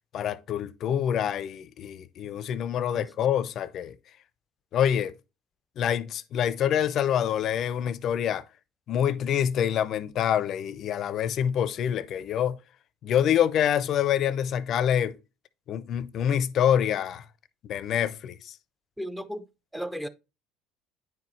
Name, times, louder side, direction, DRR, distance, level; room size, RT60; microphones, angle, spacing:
voice 1, 0.1-4.0 4.7-5.1 5.8-8.4 8.9-12.6 13.0-15.2 15.7-17.3 17.6-18.6, left 9 dB, 55° left, 0.5 m, -26 dB
voice 2, 19.0-19.4 19.7-20.1, equal, 5° right, 0.7 m, -34 dB
9.5 x 4.7 x 3.1 m
hypercardioid pair, 65°, 0 cm